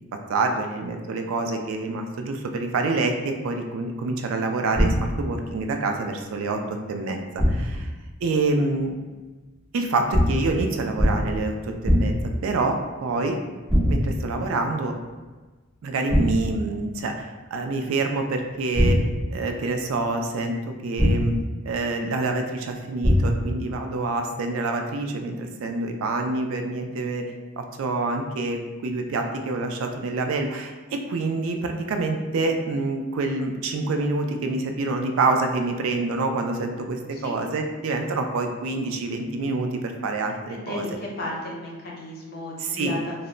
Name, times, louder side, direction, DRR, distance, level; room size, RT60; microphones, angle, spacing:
voice 1, 0.3-7.9 8.2-9.0 9.7-11.5 11.8-12.2 12.4-13.4 13.9-14.9 15.8-20.6 20.8-21.4 21.6-27.2 27.6-40.8 42.6-42.9, right 3 dB, 75° right, 4 dB, 0.3 m, -27 dB
sound 1, 4.7-5.3 7.4-7.9 10.1-10.6 11.0-11.4 11.8-12.4 13.7-14.3 16.1-16.6 18.7-19.4 21.0-21.5 23.0-23.6, equal, 10° right, 0.5 m, -21 dB
voice 2, 40.5-43.1, left 1 dB, 45° left, -3 dB, 0.5 m, -33 dB
2.1 x 2.0 x 3.6 m, 1.3 s
head